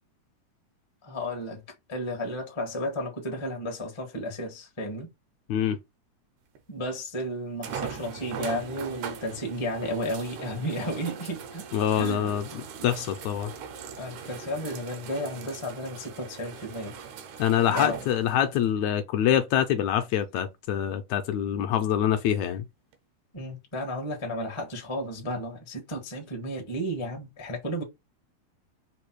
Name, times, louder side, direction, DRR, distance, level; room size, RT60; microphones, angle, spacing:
voice 1, 1.0-1.6 1.9-5.1 6.7-11.6 12.0-12.3 12.8-12.9 14.0-16.9 17.7-18.0 23.3-27.8, equal, 45° left, 0.3 m, -33 dB
sound 1, 6.5-6.6 7.6-18.7 19.4-19.5 22.9-23.0, right 6 dB, 85° right, 2.2 m, -40 dB
voice 2, 11.7-13.5 17.4-22.7, left 10 dB, 80° left, 1.7 m, -25 dB
4.9 x 2.3 x 4.5 m
omnidirectional pair, 3.5 m